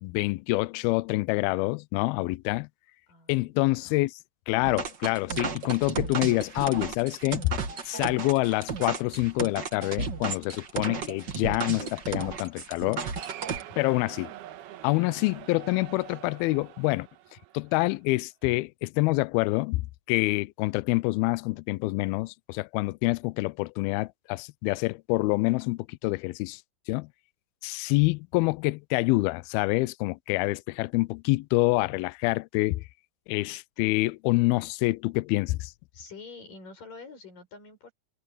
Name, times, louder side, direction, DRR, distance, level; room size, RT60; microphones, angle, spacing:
voice 1, 0.0-2.7 3.3-4.2 4.5-7.6 7.9-13.0 13.8-14.3 14.8-17.1 17.5-19.8 20.1-26.6 26.9-27.1 27.6-32.9 33.3-35.7, left 22 dB, 90° left, 2.1 m, -26 dB
voice 2, 3.1-3.6 13.5-13.9 35.9-37.9, left 4 dB, 50° left, 8.5 m, -47 dB
sound 1, 4.6-13.6, right 5 dB, 55° right, 1.2 m, -34 dB
Cheering, 13.2-17.9, right 13 dB, 70° right, 2.9 m, -45 dB
omnidirectional pair, 4.9 m